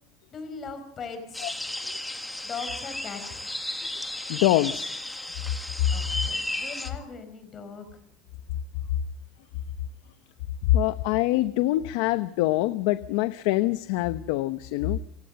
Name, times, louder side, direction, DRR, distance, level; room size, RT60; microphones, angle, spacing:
voice 1, 0.3-1.8 2.4-3.4 5.9-8.0, left 5 dB, 25° left, 8 dB, 4.9 m, -40 dB
sound 1, 1.3-6.9, left 1 dB, 5° left, 1.7 m, -34 dB
voice 2, 4.3-4.9 10.7-15.0, left 15 dB, 75° left, 12 dB, 0.9 m, -24 dB
27.5 x 16.0 x 7.7 m, 0.65 s
cardioid pair, 170°, 0 cm